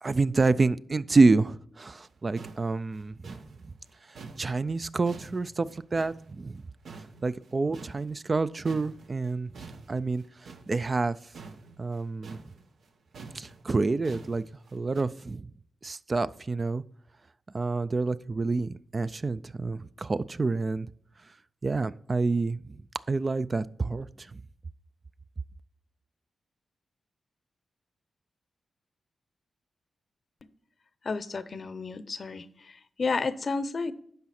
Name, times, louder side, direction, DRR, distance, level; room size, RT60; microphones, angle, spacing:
voice 1, 0.0-3.3 4.4-6.6 7.2-9.5 9.9-10.2 10.7-11.2 11.8-12.4 13.3-14.4 14.7-15.5 15.8-16.8 17.5-20.9 21.6-22.6 23.1-24.1, right 3 dB, 35° right, 15 dB, 0.3 m, -27 dB
Distorted shovelling, 2.1-2.2 2.4-6.6 6.8-8.4 8.6-15.0, right 4 dB, 75° right, 0.9 m, -47 dB
voice 2, 31.0-33.9, left 4 dB, 50° left, 14 dB, 0.6 m, -32 dB
12.0 x 4.8 x 4.2 m, 0.64 s
cardioid pair, 90°, 0 cm